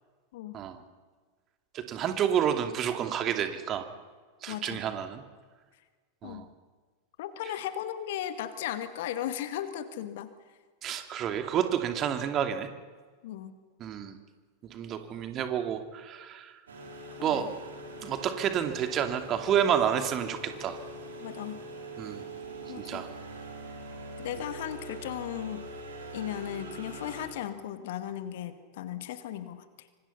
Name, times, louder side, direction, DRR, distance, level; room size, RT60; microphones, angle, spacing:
voice 1, 1.7-3.9 4.4-5.2 6.2-6.5 10.8-12.7 13.8-14.2 14.6-16.6 17.2-17.5 18.0-20.8 22.0-22.2 22.8-23.1, right 9 dB, 30° right, 7 dB, 2.6 m, -29 dB
voice 2, 4.5-4.8 6.2-6.5 7.2-10.3 13.2-13.6 17.2-17.5 21.2-21.6 22.7-23.1 24.2-25.6 26.1-29.9, left 11 dB, 55° left, 10 dB, 2.0 m, -36 dB
sound 1, 16.7-27.3, right 1 dB, 70° right, 5.9 m, -43 dB
25.5 x 25.5 x 5.7 m, 1.4 s
figure-of-eight pair, 90°, 0 cm